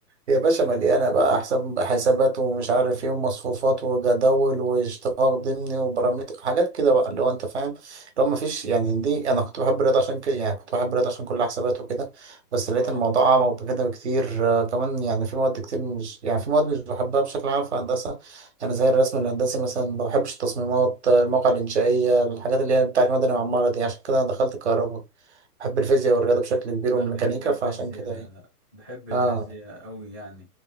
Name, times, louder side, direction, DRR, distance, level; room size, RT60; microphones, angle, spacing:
voice 1, 0.3-25.0 25.6-28.3 29.1-29.4, right 3 dB, 45° right, 0.9 m, -23 dB
voice 2, 27.0-28.4 28.7-30.5, equal, 15° right, 0.6 m, -41 dB
3.3 x 2.9 x 2.2 m
hypercardioid pair, 180°, 48 cm